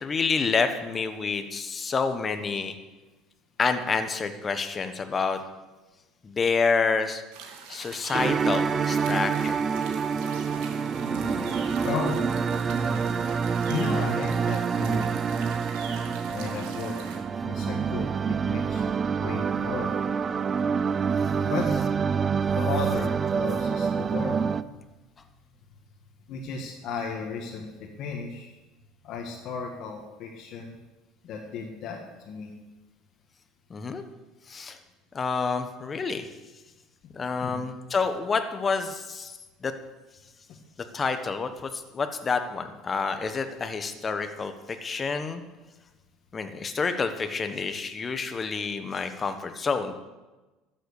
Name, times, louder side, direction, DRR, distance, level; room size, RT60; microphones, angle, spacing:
voice 1, 0.0-2.7 3.6-5.4 6.2-7.2 7.7-9.6 33.7-34.0 34.5-34.8 35.1-36.3 37.1-39.7 40.9-45.4 46.3-49.9, left 4 dB, 25° left, 8 dB, 1.2 m, -28 dB
sound 1, 7.3-17.2, right 6 dB, 80° right, 2.3 m, -44 dB
sound 2, 8.1-24.6, right 6 dB, 30° right, 0.5 m, -27 dB
voice 2, 11.0-12.4 12.7-13.1 13.7-15.2 16.2-17.0 17.4-19.9 21.4-21.7 22.5-24.4 26.3-28.6 29.0-30.8 31.2-32.0 32.2-32.5 37.0-37.1 37.4-37.6, left 4 dB, 55° left, -1 dB, 1.7 m, -34 dB
13.0 x 8.0 x 6.6 m, 1.1 s
supercardioid pair, 120°, 0 cm